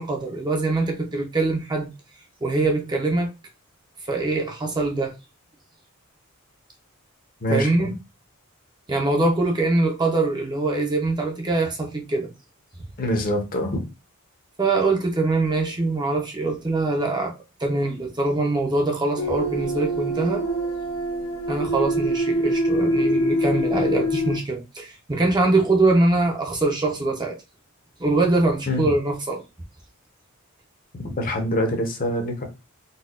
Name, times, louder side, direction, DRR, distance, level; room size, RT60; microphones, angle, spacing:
voice 1, 0.0-1.9 2.4-3.3 4.1-5.1 7.5-7.9 8.9-12.3 14.6-17.3 17.6-20.4 21.5-27.3 28.0-29.4, right 2 dB, 20° right, 0.5 m, -23 dB
voice 2, 7.4-7.9 13.0-13.8 28.7-28.9 30.9-32.4, left 1 dB, 40° left, 0.7 m, -25 dB
sound 1, 19.2-24.4, equal, 75° left, 0.7 m, -24 dB
4.0 x 2.2 x 2.3 m
head